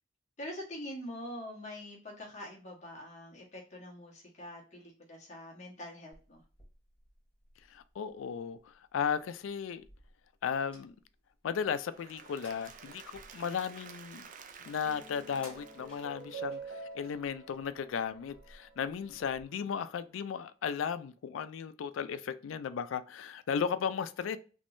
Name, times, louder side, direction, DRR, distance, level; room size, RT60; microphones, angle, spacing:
voice 1, 0.4-6.4, left 1 dB, 35° left, 1.3 m, -44 dB
sound 1, 6.1-19.4, equal, 5° left, 1.6 m, -61 dB
voice 2, 7.7-9.8 10.4-10.9 11.4-14.3 14.7-24.4, left 7 dB, 80° left, 0.3 m, -35 dB
Applause / Crowd, 11.7-16.7, right 6 dB, 40° right, 0.4 m, -52 dB
sound 2, 14.6-19.2, right 4 dB, 75° right, 1.0 m, -47 dB
3.5 x 3.0 x 2.5 m
head